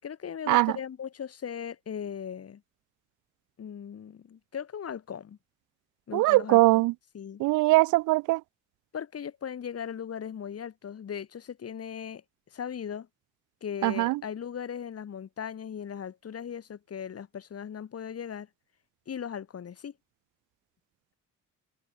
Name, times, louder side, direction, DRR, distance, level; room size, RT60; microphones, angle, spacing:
voice 1, 0.0-2.6 3.6-5.4 6.1-6.8 7.1-7.4 8.9-12.2 12.5-13.1 13.6-18.5 19.1-19.9, left 8 dB, 50° left, 4.5 m, -38 dB
voice 2, 6.1-6.9 7.4-8.4 13.8-14.2, right 20 dB, 90° right, 0.5 m, -22 dB
cardioid pair, 90°, 30 cm